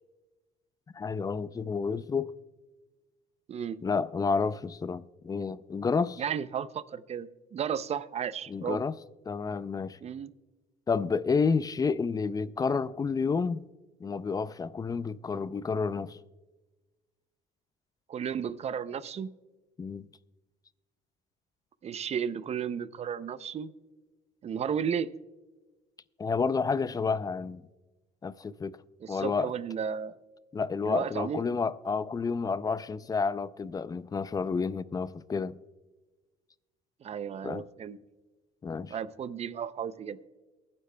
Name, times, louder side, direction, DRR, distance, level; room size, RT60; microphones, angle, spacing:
voice 1, 0.9-2.3 3.8-6.2 8.5-8.9 9.3-10.0 10.9-13.7 14.0-16.2 19.8-20.1 26.2-27.6 28.2-28.8 29.1-29.5 30.5-35.5 37.4-37.6 38.6-38.9, left 5 dB, 20° left, 0.4 m, -30 dB
voice 2, 3.5-3.8 6.2-8.8 10.0-10.3 18.1-19.3 21.8-23.7 24.4-25.1 29.0-30.1 30.8-31.4 37.0-38.0 38.9-40.2, right 7 dB, 40° right, 0.5 m, -33 dB
23.5 x 9.7 x 2.2 m
cardioid pair, 110°, 17 cm